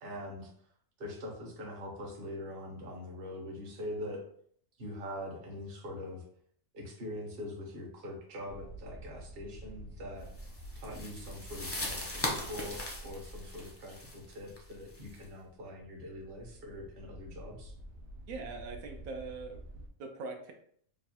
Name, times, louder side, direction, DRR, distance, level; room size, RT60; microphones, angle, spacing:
voice 1, 0.0-0.5 1.0-4.2 4.8-6.2 6.7-10.3 10.7-17.7, left 1 dB, 45° right, -1 dB, 1.0 m, -43 dB
sound 1, 8.5-19.9, right 1 dB, 65° right, 0.9 m, -50 dB
sound 2, 10.3-15.2, left 1 dB, 15° left, 0.4 m, -39 dB
voice 2, 18.3-20.5, right 3 dB, 90° right, 4 dB, 1.1 m, -42 dB
3.1 x 2.3 x 4.2 m, 0.62 s
omnidirectional pair, 1.4 m